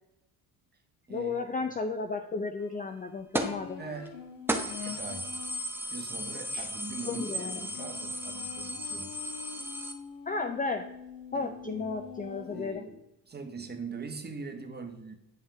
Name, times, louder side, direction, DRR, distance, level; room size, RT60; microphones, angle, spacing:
voice 1, 1.1-3.8 6.5-6.7 7.0-7.7 10.3-10.9 11.3-12.9, left 4 dB, 15° left, 0.5 m, -33 dB
sound 1, 3.3-3.6 4.0-4.1 4.5-9.9, equal, 5° right, 1.0 m, -35 dB
sound 2, 3.4-5.6 7.7-12.7, left 7 dB, 70° left, 1.3 m, -45 dB
voice 2, 3.8-4.2 4.8-5.3 5.9-7.2 7.6-9.2 11.3-11.9 12.2-13.0 13.3-15.2, right 4 dB, 20° right, 1.3 m, -42 dB
9.3 x 5.4 x 3.4 m
hypercardioid pair, 70°, 50 cm